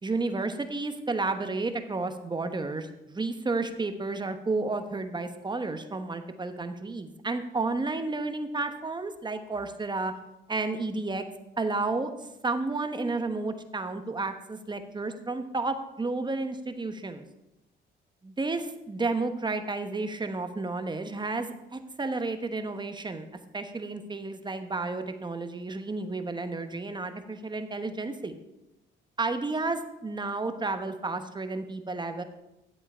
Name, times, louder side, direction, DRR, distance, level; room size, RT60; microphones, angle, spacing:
voice 1, 0.0-10.2 10.5-11.3 11.6-17.2 18.2-23.3 23.5-28.3 29.2-32.2, right 3 dB, 20° right, 8 dB, 1.0 m, -32 dB
11.5 x 7.8 x 4.4 m, 0.91 s
cardioid pair, 90°, 20 cm